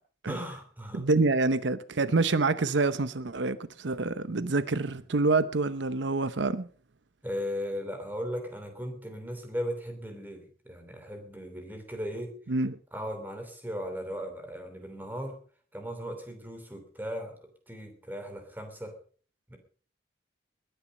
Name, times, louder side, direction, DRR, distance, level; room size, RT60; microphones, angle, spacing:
voice 1, 0.3-1.0 4.8-5.0 7.2-12.4 12.9-15.4 15.7-19.0 19.5-19.6, equal, 10° right, 3.1 m, -37 dB
voice 2, 0.9-6.7 12.5-12.8, right 3 dB, 80° right, 0.8 m, -27 dB
20.5 x 10.5 x 5.2 m
head